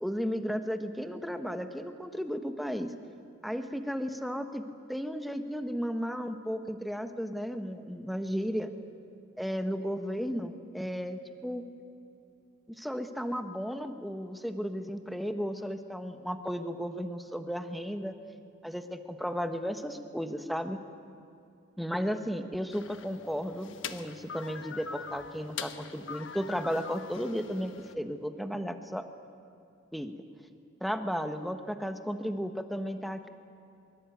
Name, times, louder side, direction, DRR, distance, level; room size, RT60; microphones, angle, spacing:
voice 1, 0.0-2.9 3.4-8.7 9.4-11.6 12.8-18.1 18.6-20.8 21.8-29.0 29.9-30.1 30.8-33.3, equal, ahead, 7 dB, 1.3 m, -34 dB
sound 1, 22.7-27.9, left 6 dB, 75° left, 1.2 m, -43 dB
23.5 x 23.5 x 9.3 m, 2.6 s
head